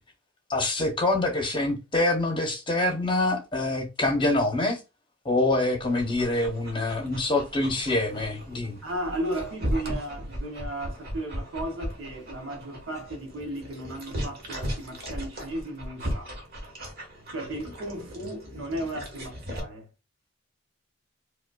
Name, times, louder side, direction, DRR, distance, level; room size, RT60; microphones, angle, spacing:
voice 1, 0.5-4.8 5.2-8.8, left 2 dB, 25° left, 0.8 m, -25 dB
Dog, 5.8-19.6, equal, 50° right, 1.4 m, -37 dB
voice 2, 8.8-16.3 17.3-19.9, right 1 dB, 70° right, 0.9 m, -35 dB
4.9 x 2.2 x 2.3 m
head